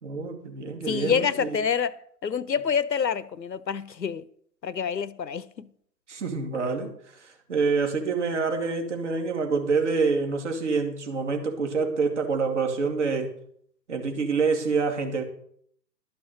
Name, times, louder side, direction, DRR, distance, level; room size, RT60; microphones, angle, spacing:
voice 1, 0.0-1.6 6.1-6.9 7.2-13.3 13.9-15.2, right 4 dB, 45° right, 2.4 m, -26 dB
voice 2, 0.9-1.9 2.2-4.2 4.6-5.7, left 7 dB, 80° left, 0.8 m, -27 dB
12.0 x 5.9 x 7.8 m
figure-of-eight pair, 135°, 50 cm